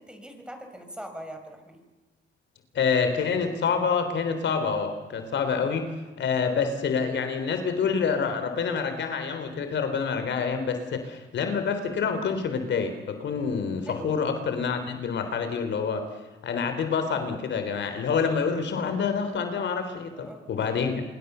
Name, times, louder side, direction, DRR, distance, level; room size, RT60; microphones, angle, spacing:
voice 1, 0.0-1.8 13.9-14.1 20.2-21.0, equal, 5° right, 5 dB, 5.9 m, -42 dB
voice 2, 2.7-16.1 16.4-21.0, left 5 dB, 65° left, 8 dB, 3.7 m, -27 dB
27.0 x 22.5 x 6.9 m, 1.2 s
cardioid pair, 90°, 20 cm